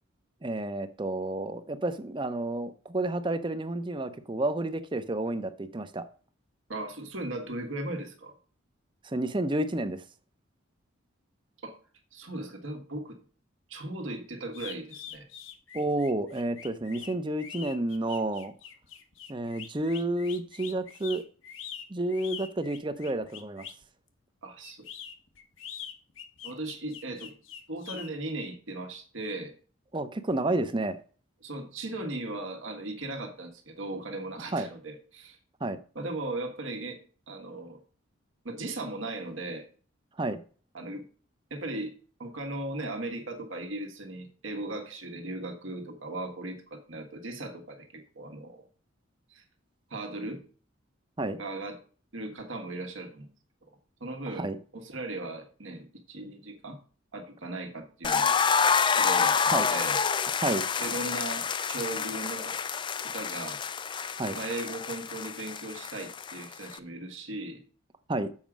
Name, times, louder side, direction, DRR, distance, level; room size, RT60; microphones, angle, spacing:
voice 1, 0.4-6.0 9.0-10.0 15.7-18.5 19.3-21.2 21.9-23.7 29.9-31.0 34.5-34.7 35.6-35.8 40.2-40.4 51.2-51.4 54.3-54.6 59.5-59.7 60.4-60.7 64.2-64.4 68.1-68.3, right 2 dB, 25° right, 0.6 m, -30 dB
voice 2, 6.7-8.3 11.6-11.8 12.1-13.2 13.7-15.3 24.4-24.9 26.4-27.3 27.7-29.5 31.4-35.4 35.9-37.0 37.3-37.8 38.4-39.7 40.7-41.0 41.5-41.9 42.2-48.7 49.3-49.4 49.9-50.4 51.4-51.8 52.1-53.3 53.7-56.8 57.1-58.3 59.0-60.0 60.8-62.6 63.0-63.6 64.3-67.6, right 2 dB, 75° right, 1.6 m, -37 dB
sound 1, 14.5-23.8 24.6-28.1, left 8 dB, 75° left, 1.0 m, -44 dB
sound 2, 58.0-66.8, left 6 dB, 25° left, 0.3 m, -28 dB
7.3 x 5.1 x 6.1 m
head